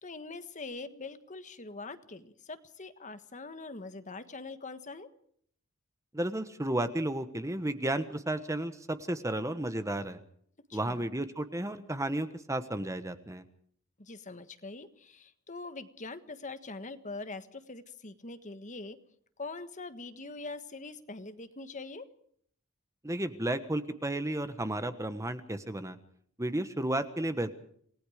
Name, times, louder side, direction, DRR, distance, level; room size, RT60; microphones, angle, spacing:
voice 1, 0.0-5.1 10.7-11.1 14.0-19.0 19.4-22.1, left 3 dB, 35° left, 10 dB, 1.4 m, -43 dB
voice 2, 6.1-10.2 10.7-13.4 23.0-26.0 26.4-27.5, right 1 dB, 15° right, 10 dB, 1.2 m, -33 dB
28.0 x 19.0 x 5.0 m, 0.63 s
head